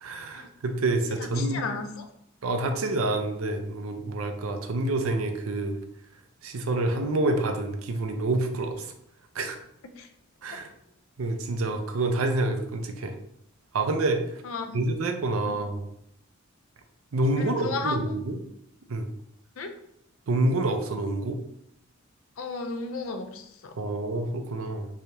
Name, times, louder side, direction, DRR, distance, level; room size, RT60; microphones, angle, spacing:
voice 1, 0.0-1.6 2.4-5.8 6.4-8.9 9.4-9.6 10.4-10.7 11.2-13.1 13.7-14.2 14.7-15.9 17.1-18.4 18.9-19.1 20.3-21.4 23.8-24.9, right 2 dB, 90° right, 6 dB, 0.5 m, -27 dB
voice 2, 1.2-2.1 10.0-10.1 14.4-14.8 15.4-15.6 17.4-18.1 19.6-19.7 22.4-23.7, left 4 dB, 75° left, 7 dB, 0.5 m, -34 dB
3.4 x 3.3 x 2.8 m, 0.75 s
head